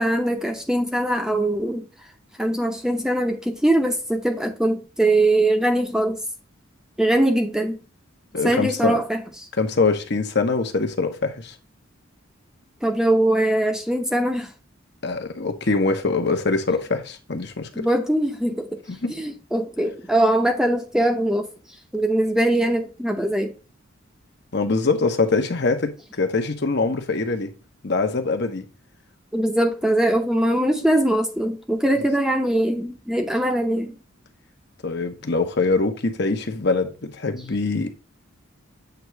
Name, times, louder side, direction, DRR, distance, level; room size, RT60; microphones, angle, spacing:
voice 1, 0.0-1.9 2.4-6.2 7.0-7.8 8.4-9.2 12.8-14.5 17.7-18.8 19.1-21.5 21.9-23.5 29.3-34.0, right 1 dB, 5° right, 0.8 m, -21 dB
voice 2, 8.3-9.0 9.6-11.5 15.0-17.9 18.9-19.1 24.5-27.5 27.8-28.7 34.8-38.1, left 3 dB, 55° left, 1.0 m, -23 dB
8.0 x 3.0 x 4.5 m
head